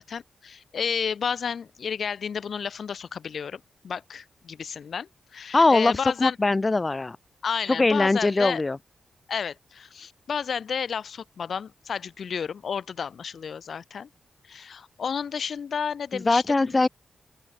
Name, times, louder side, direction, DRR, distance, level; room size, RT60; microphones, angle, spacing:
voice 1, 0.0-6.4 7.4-8.6 9.3-14.1 14.4-16.8, left 6 dB, 70° left, 2.0 m, -32 dB
voice 2, 5.5-7.2 7.8-8.8 16.1-16.9, left 3 dB, 30° left, 1.4 m, -21 dB
open air
cardioid pair, 65°, 0 cm